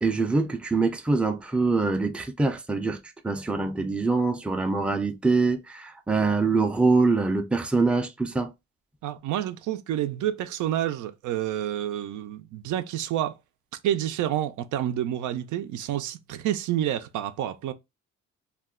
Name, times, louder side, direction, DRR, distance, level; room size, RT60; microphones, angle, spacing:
voice 1, 0.0-3.0 3.2-8.5, right 3 dB, 5° right, 0.4 m, -24 dB
voice 2, 9.0-13.3 13.8-17.7, right 11 dB, 75° right, 0.5 m, -29 dB
2.4 x 2.2 x 3.6 m
cardioid pair, 90°, 30 cm